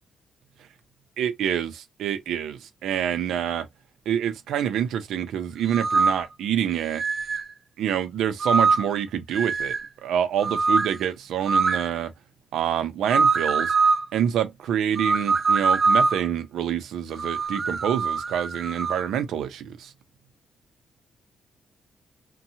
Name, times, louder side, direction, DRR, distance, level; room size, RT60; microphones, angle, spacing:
voice 1, 1.2-3.7 4.1-7.0 7.8-9.7 10.0-12.1 12.5-13.7 14.1-19.9, right 9 dB, 90° right, 0.6 m, -27 dB
sound 1, 5.7-6.3 7.0-7.5 8.4-9.0 9.3-9.9 10.4-11.0 11.5-11.9 13.1-14.0 15.0-16.3 17.1-19.0, right 4 dB, 35° right, 0.3 m, -23 dB
2.7 x 2.2 x 2.7 m
cardioid pair, 145°, 0 cm